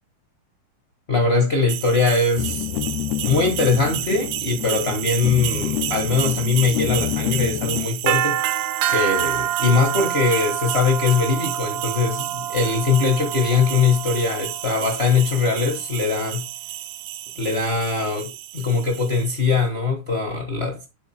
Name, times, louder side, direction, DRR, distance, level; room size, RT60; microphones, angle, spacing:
voice 1, 1.1-2.6 3.2-8.4 8.9-16.4 17.4-20.8, left 4 dB, 65° left, 0.6 m, -21 dB
sound 1, 1.7-19.4, right 13 dB, 80° right, 2.2 m, -28 dB
sound 2, 2.4-7.9, left 12 dB, 90° left, 1.5 m, -28 dB
9.6 x 3.8 x 4.3 m
omnidirectional pair, 3.6 m